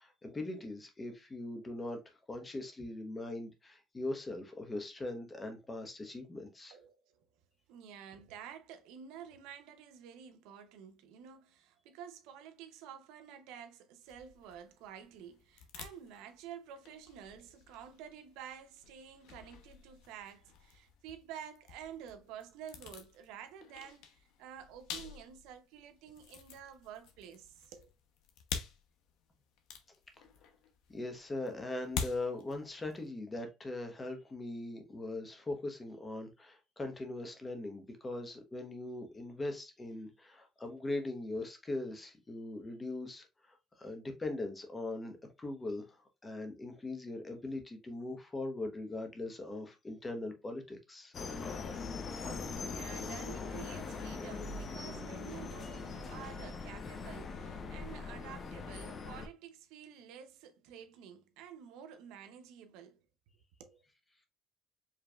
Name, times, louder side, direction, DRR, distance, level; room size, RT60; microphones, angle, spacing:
voice 1, 0.0-6.7 30.9-45.1 45.4-46.0 46.2-51.1, left 2 dB, 20° left, 1.1 m, -40 dB
voice 2, 6.7-7.3 7.7-27.9 52.3-63.0 63.6-63.8, right 8 dB, 85° right, 0.7 m, -50 dB
sound 1, 14.0-33.1, left 7 dB, 80° left, 0.8 m, -48 dB
sound 2, 51.1-59.3, left 4 dB, 35° left, 0.7 m, -41 dB
4.9 x 3.2 x 2.3 m
cardioid pair, 120°, 0 cm